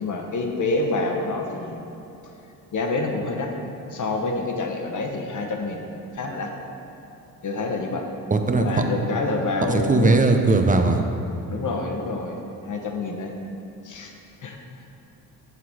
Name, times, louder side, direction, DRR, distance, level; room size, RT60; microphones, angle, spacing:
voice 1, 0.0-1.8 2.7-3.5 3.9-6.5 7.4-8.1 8.5-10.2 11.5-12.4 12.7-13.3 13.8-14.1 14.4-14.6, left 3 dB, 50° left, 2 dB, 1.0 m, -27 dB
voice 2, 8.3-8.7 9.7-11.0, right 3 dB, 20° right, 5 dB, 0.6 m, -18 dB
7.1 x 4.0 x 6.3 m, 2.9 s
cardioid pair, 85°, 39 cm